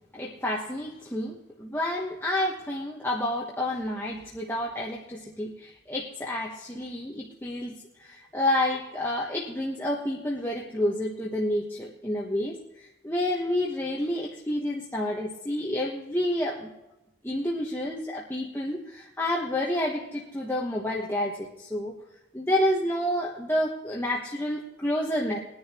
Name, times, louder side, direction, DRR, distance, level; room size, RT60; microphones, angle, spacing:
voice 1, 0.1-16.7 17.2-22.0 22.3-25.4, left 1 dB, 10° left, -3 dB, 1.2 m, -29 dB
20.5 x 10.5 x 3.0 m, 0.93 s
head